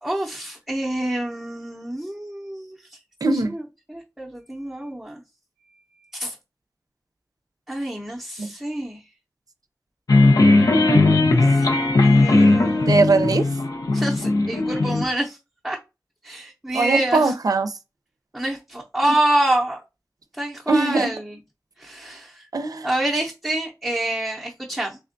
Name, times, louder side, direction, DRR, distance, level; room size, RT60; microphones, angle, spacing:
voice 1, 0.0-3.0 3.3-3.6 3.9-5.2 6.1-6.4 7.7-9.0 11.2-13.0 13.9-15.4 15.6-15.8 16.2-17.3 18.3-19.8 20.3-21.4 21.8-22.5 22.8-25.0, right 1 dB, 5° right, 0.6 m, -27 dB
voice 2, 3.2-3.5 8.4-8.5 12.9-13.5 16.7-17.7 19.0-19.1 20.7-21.1 22.5-22.9, right 3 dB, 75° right, 0.5 m, -20 dB
sound 1, 10.1-15.0, left 2 dB, 85° left, 0.6 m, -17 dB
3.4 x 3.3 x 2.5 m
wide cardioid pair, 55°, 6 cm